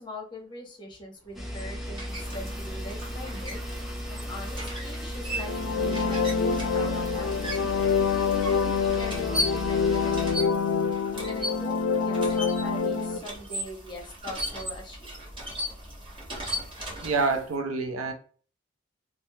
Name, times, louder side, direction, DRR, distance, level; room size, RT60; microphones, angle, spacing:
voice 1, 0.0-3.6 4.1-10.9 11.2-11.8 12.0-15.3, left 1 dB, 20° left, 0.8 m, -42 dB
sound 1, 1.3-10.3, equal, ahead, 0.5 m, -36 dB
sound 2, 1.3-17.5, equal, 25° right, 1.0 m, -37 dB
sound 3, 5.3-13.2, left 5 dB, 80° left, 0.4 m, -26 dB
voice 2, 17.0-18.1, right 4 dB, 85° right, 0.6 m, -27 dB
3.3 x 2.0 x 2.7 m
head